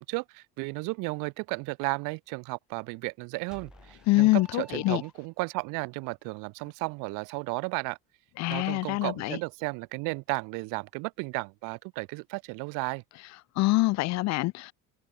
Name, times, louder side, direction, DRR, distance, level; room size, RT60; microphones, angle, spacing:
voice 1, 0.0-8.0 8.5-13.0, right 28 dB, 90° right, 1.0 m, -34 dB
sound 1, 3.5-5.6, right 1 dB, ahead, 6.3 m, -52 dB
voice 2, 4.1-5.0 8.4-9.4 13.6-14.7, left 20 dB, 60° left, 0.5 m, -25 dB
cardioid pair, 140°, 31 cm